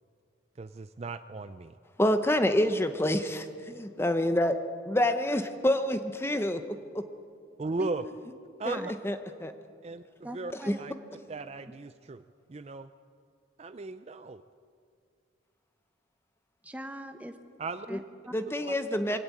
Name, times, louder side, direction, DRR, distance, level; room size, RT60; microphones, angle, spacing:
voice 1, 0.6-1.8 7.6-8.0 8.6-8.9 9.8-10.0 10.3-10.9 11.3-12.9 13.6-14.4 17.6-17.9 18.6-18.7, right 3 dB, 30° right, 12 dB, 0.4 m, -37 dB
voice 2, 2.0-4.6 4.9-7.0 8.7-8.8 9.0-9.2 9.4-9.5 10.7-10.8 18.3-19.2, left 1 dB, 10° left, 9 dB, 0.7 m, -27 dB
voice 3, 10.2-10.8 16.6-17.3 17.9-18.3, equal, 10° right, 7 dB, 1.1 m, -40 dB
22.5 x 17.5 x 8.4 m, 2.4 s
head